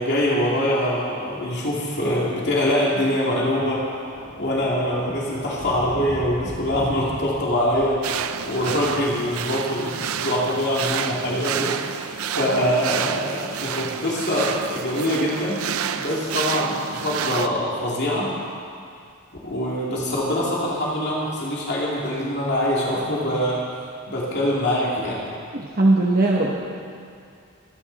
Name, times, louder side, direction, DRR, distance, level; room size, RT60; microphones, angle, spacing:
voice 1, 0.0-3.9 4.4-8.0 8.4-12.1 12.4-15.6 15.9-18.3 19.4-23.6 24.1-25.2, equal, 55° left, -5 dB, 2.7 m, -24 dB
Thunder, 3.5-9.9 10.8-11.1, equal, 90° left, 2.5 m, -40 dB
sound 1, 8.0-17.5, right 8 dB, 85° right, 0.6 m, -29 dB
voice 2, 25.5-26.5, right 2 dB, 45° right, -3 dB, 1.1 m, -19 dB
25.0 x 10.5 x 4.1 m, 2.3 s
head